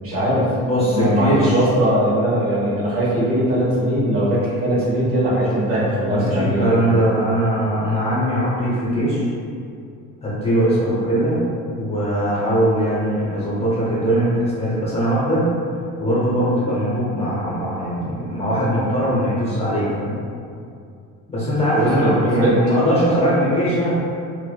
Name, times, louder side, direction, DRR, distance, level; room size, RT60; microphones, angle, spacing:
voice 1, 0.0-0.5 0.8-6.9 21.7-22.6, right 1 dB, 40° right, -8 dB, 1.1 m, -20 dB
voice 2, 0.7-1.6 5.5-5.6 6.1-9.3 10.2-11.5 11.8-15.5 16.0-20.2 21.3-23.9, equal, 15° left, -8 dB, 0.8 m, -20 dB
4.6 x 2.1 x 2.2 m, 2.4 s
cardioid pair, 155°, 34 cm